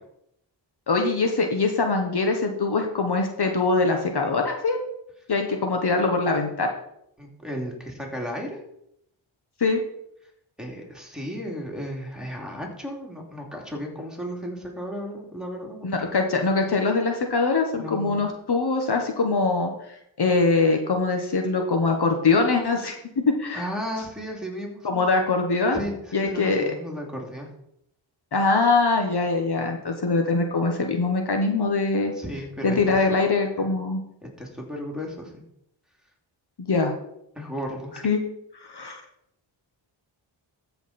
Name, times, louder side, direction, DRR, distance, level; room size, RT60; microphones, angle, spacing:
voice 1, 0.9-4.8 5.3-6.7 9.6-9.8 15.8-23.0 23.2-23.7 24.8-25.8 26.1-26.7 28.3-32.1 32.6-34.0 36.6-36.9 38.0-38.2 38.5-39.0, left 3 dB, 55° left, 4 dB, 1.3 m, -23 dB
voice 2, 7.2-8.6 10.6-16.1 17.7-18.3 23.5-25.0 25.7-27.5 32.1-33.2 33.6-33.7 34.2-35.3 37.3-37.9, equal, ahead, -1 dB, 2.9 m, -34 dB
13.5 x 5.9 x 4.3 m, 0.77 s
cardioid pair, 65°, 48 cm